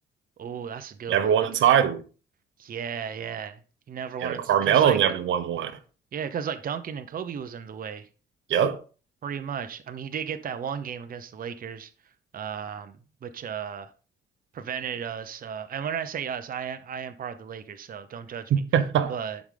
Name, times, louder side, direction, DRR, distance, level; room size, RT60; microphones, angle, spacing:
voice 1, 0.4-1.5 2.6-3.6 3.9-5.0 6.1-8.1 9.2-11.9 12.3-13.0 13.2-13.9 14.5-18.5 19.1-19.4, right 7 dB, 45° right, 0.8 m, -34 dB
voice 2, 1.1-2.0 4.2-5.7 8.5-8.8 18.5-19.1, right 9 dB, 75° right, 1.0 m, -22 dB
11.0 x 4.9 x 3.9 m
cardioid pair, 90°, 20 cm